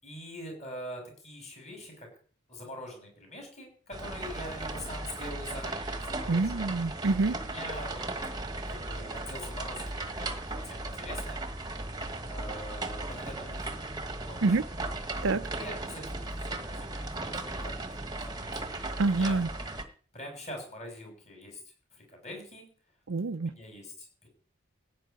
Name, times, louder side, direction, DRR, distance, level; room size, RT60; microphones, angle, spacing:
voice 1, 0.0-2.1 2.5-6.7 7.4-8.0 8.3-11.4 12.2-13.7 14.2-14.7 15.6-16.9 17.2-18.5 19.1-19.4 20.1-21.6 21.9-22.7 23.4-24.3, left 1 dB, 35° left, 6.8 m, -44 dB
sound 1, 3.9-19.8, right 2 dB, 20° right, 1.3 m, -37 dB
voice 2, 6.3-7.4 14.4-14.6 15.2-15.5 19.0-19.5 23.1-23.5, right 3 dB, 75° right, 0.6 m, -26 dB
16.0 x 5.7 x 9.3 m
head